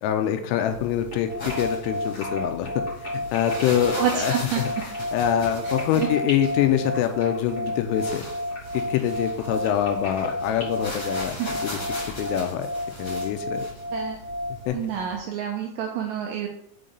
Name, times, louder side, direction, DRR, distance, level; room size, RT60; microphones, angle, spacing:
voice 1, 0.0-2.7 3.3-4.7 5.1-8.2 8.7-11.4 11.6-11.8 12.2-12.7 13.0-13.6 14.7-14.8, left 10 dB, 85° left, 7 dB, 3.2 m, -25 dB
sound 1, 0.6-15.2, equal, 45° left, 1.3 m, -39 dB
sound 2, 1.1-10.6, left 1 dB, 70° left, 0.6 m, -39 dB
sound 3, 1.3-14.7, left 1 dB, 50° right, 1.0 m, -32 dB
voice 2, 4.0-4.6 5.6-6.1 11.4-11.5 13.9-14.2 14.7-16.5, right 8 dB, 90° right, 1 dB, 2.5 m, -28 dB
7.8 x 3.7 x 3.9 m, 0.72 s
omnidirectional pair, 5.8 m